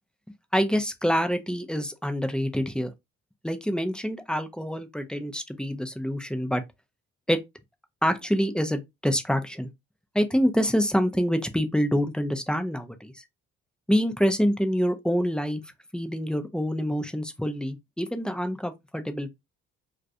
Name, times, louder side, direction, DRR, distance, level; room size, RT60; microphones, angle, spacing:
voice 1, 0.5-2.9 3.4-6.6 7.3-7.4 8.0-9.7 10.1-13.2 13.9-15.6 15.9-19.3, equal, 5° left, 0.5 m, -26 dB
2.3 x 2.1 x 2.7 m
supercardioid pair, 55°, 32 cm